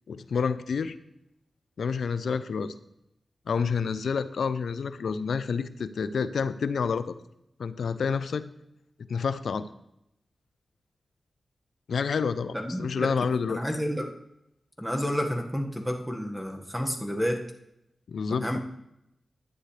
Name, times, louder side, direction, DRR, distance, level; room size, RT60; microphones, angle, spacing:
voice 1, 0.1-1.0 1.8-2.7 3.5-7.2 7.6-8.5 9.1-9.7 11.9-13.6 18.1-18.6, left 5 dB, 85° left, 14 dB, 0.5 m, -29 dB
voice 2, 12.5-13.1 13.5-14.1 14.8-17.4 18.4-18.6, equal, ahead, 2 dB, 1.7 m, -30 dB
11.5 x 9.5 x 3.3 m, 0.81 s
cardioid pair, 50°, 0 cm